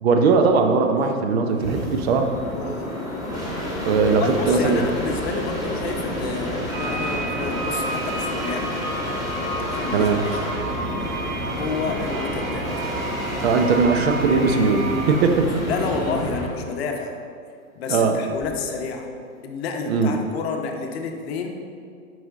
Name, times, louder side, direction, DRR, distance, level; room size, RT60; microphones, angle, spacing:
voice 1, 0.0-2.3 3.8-4.8 9.9-10.3 13.4-15.5 17.9-18.2 19.9-20.1, right 4 dB, 45° right, 5 dB, 0.7 m, -19 dB
sound 1, 1.5-16.6 18.3-18.8, equal, 10° right, 1.8 m, -29 dB
voice 2, 2.5-3.1 4.1-8.7 9.7-10.6 11.5-12.7 15.7-17.2 17.7-19.1 19.4-21.5, left 5 dB, 45° left, 3 dB, 0.9 m, -30 dB
sound 2, 6.7-15.2, right 2 dB, 70° right, 1.3 m, -32 dB
7.8 x 5.0 x 3.7 m, 2.3 s
figure-of-eight pair, 110°, 43 cm